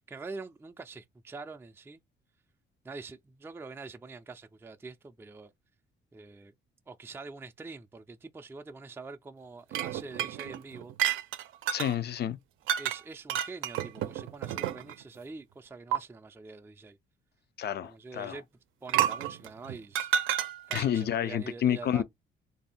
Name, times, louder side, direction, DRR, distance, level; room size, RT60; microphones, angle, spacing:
voice 1, 0.1-2.0 2.8-5.5 6.1-6.5 6.9-10.9 12.8-17.0 17.8-18.5 18.8-20.1 20.7-22.0, right 3 dB, 10° right, 0.4 m, -45 dB
sound 1, 9.7-11.9 12.7-13.0 13.3-15.0 15.9-16.0 18.9-21.0, right 11 dB, 85° right, 0.5 m, -30 dB
voice 2, 11.7-12.4 17.6-18.4 20.7-22.0, left 10 dB, 55° left, 0.6 m, -29 dB
3.2 x 2.7 x 4.1 m
cardioid pair, 90°, 20 cm